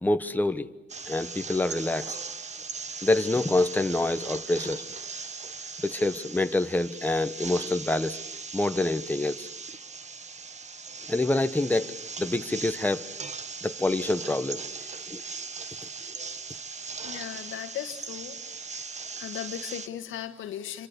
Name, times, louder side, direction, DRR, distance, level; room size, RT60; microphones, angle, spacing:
voice 1, 0.0-0.7 1.1-2.2 3.0-4.8 5.8-8.2 8.5-9.5 11.1-11.9 12.2-13.1 13.6-14.6 15.1-15.2, left 2 dB, 10° left, 9 dB, 1.2 m, -26 dB
sound 1, 0.9-19.9, right 5 dB, 35° right, 1.5 m, -39 dB
voice 2, 17.0-18.4 18.8-20.9, left 11 dB, 80° left, 7 dB, 1.6 m, -37 dB
27.0 x 25.0 x 8.3 m, 0.89 s
cardioid pair, 90°, 20 cm